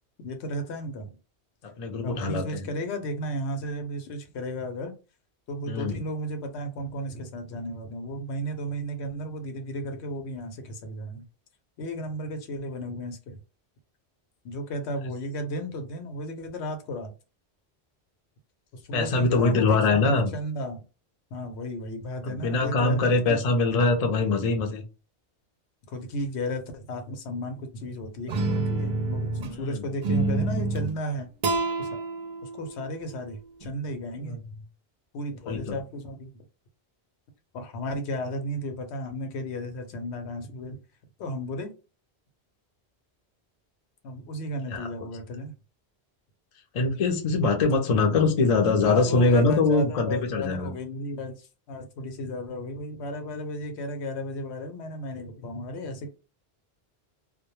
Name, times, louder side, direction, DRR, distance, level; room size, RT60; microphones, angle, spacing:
voice 1, 0.2-1.1 2.0-5.0 5.5-11.2 11.8-13.4 14.4-17.1 18.7-20.8 21.3-23.4 25.9-31.3 31.8-32.0 32.4-34.4 35.1-36.4 37.5-40.8 41.2-41.7 44.0-45.5 48.8-56.1, equal, 80° left, 0.9 m, -34 dB
voice 2, 1.6-2.6 5.7-6.0 18.9-20.3 22.2-24.8 29.5-29.8 34.2-34.4 35.4-35.6 44.7-44.9 46.7-50.7, left 3 dB, 45° left, 0.5 m, -23 dB
sound 1, 28.3-29.6 30.0-30.9 31.4-33.7, right 3 dB, 55° right, 0.5 m, -28 dB
2.1 x 2.1 x 2.9 m
omnidirectional pair, 1.1 m